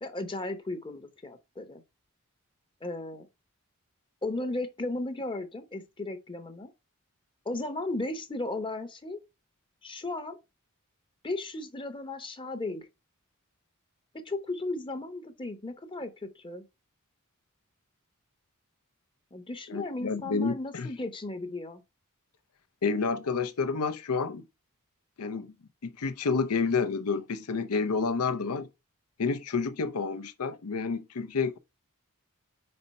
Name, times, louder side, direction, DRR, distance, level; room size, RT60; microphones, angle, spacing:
voice 1, 0.0-1.8 2.8-3.3 4.2-6.7 7.4-9.2 9.8-10.4 11.2-12.9 14.1-16.6 19.3-21.8, left 2 dB, 25° left, 0.8 m, -35 dB
voice 2, 19.7-20.9 22.8-24.4 25.2-25.5 25.8-28.7 29.2-31.6, left 4 dB, 85° left, 0.6 m, -29 dB
5.3 x 4.3 x 5.2 m
head